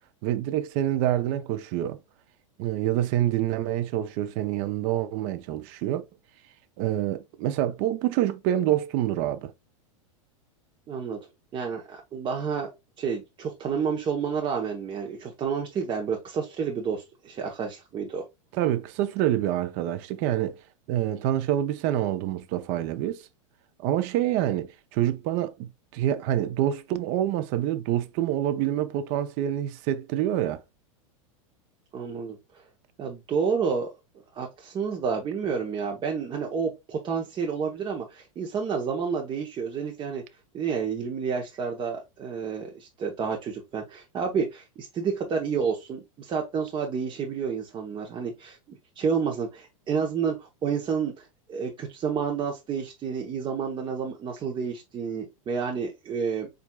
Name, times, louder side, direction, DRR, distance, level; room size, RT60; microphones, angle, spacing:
voice 1, 0.2-2.0 2.6-6.0 6.8-9.5 18.5-20.6 20.9-23.3 23.8-30.6, right 12 dB, 50° right, 0.6 m, -27 dB
voice 2, 10.9-11.2 11.5-12.7 13.0-18.3 31.9-32.6 33.0-33.9 34.3-40.2 40.5-48.6 49.0-56.5, right 6 dB, 25° right, 0.9 m, -30 dB
7.2 x 2.6 x 2.3 m
hypercardioid pair, 125°, 18 cm